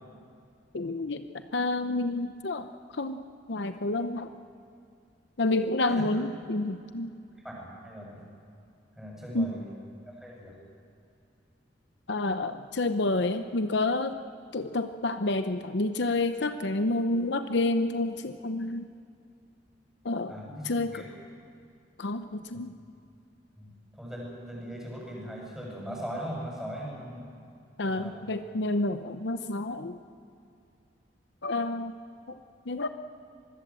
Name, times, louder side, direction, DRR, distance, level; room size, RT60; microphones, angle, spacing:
voice 1, 0.7-1.2 1.5-2.7 2.9-3.2 3.5-4.3 5.4-7.1 9.3-9.5 12.1-14.1 14.5-18.9 20.0-20.4 20.6-21.0 22.0-22.7 27.8-30.0 31.4-31.9 32.3-32.4 32.7-32.9, left 2 dB, 65° left, 9 dB, 0.8 m, -29 dB
voice 2, 7.4-8.2 9.0-9.7 10.1-10.5 20.3-21.1 22.5-22.6 23.6-23.7 23.9-27.2 27.8-28.2, equal, 5° right, -3 dB, 8.0 m, -39 dB
25.5 x 21.0 x 7.6 m, 2.5 s
head